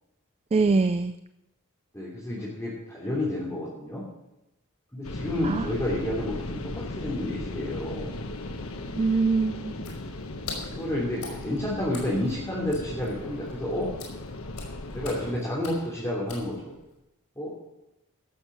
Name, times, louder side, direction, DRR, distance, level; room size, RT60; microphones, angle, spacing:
voice 1, 0.5-1.2 5.4-5.7 8.9-9.9, right 4 dB, 25° right, 11 dB, 0.3 m, -24 dB
voice 2, 1.9-4.0 4.9-8.2 10.7-13.9 14.9-16.7 17.4-17.5, left 1 dB, 15° left, -7 dB, 3.0 m, -30 dB
sound 1, 5.0-15.3, left 2 dB, 65° left, 1.2 m, -37 dB
Water / Splash splatter, 9.8-17.0, left 4 dB, 90° left, 5.0 m, -44 dB
16.0 x 7.2 x 6.1 m, 0.89 s
head